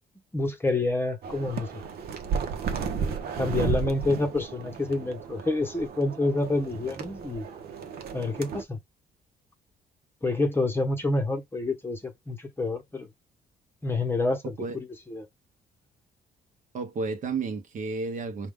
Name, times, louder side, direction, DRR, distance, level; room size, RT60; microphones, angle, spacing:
voice 1, 0.3-1.7 2.9-7.5 8.1-8.8 10.2-13.1 13.8-15.3, left 2 dB, 15° left, 0.8 m, -28 dB
sound 1, 1.2-8.6, right 6 dB, 70° right, 0.9 m, -33 dB
voice 2, 14.4-14.8 16.7-18.5, right 4 dB, 50° right, 1.0 m, -32 dB
4.8 x 2.3 x 3.6 m
cardioid pair, 140°, 17 cm